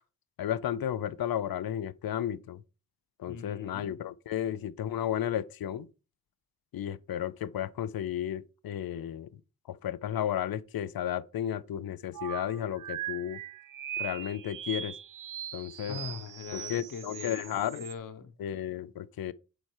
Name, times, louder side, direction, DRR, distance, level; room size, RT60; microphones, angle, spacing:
voice 1, 0.4-2.6 3.2-5.9 6.7-9.4 9.7-13.4 14.0-15.0 15.5-16.0 16.5-17.8 18.4-19.3, left 10 dB, 80° left, 0.6 m, -33 dB
voice 2, 3.3-4.0 15.9-18.3, left 6 dB, 65° left, 1.1 m, -41 dB
sound 1, 12.1-18.0, right 10 dB, 65° right, 0.5 m, -40 dB
8.0 x 4.3 x 4.7 m
wide cardioid pair, 115°, 35 cm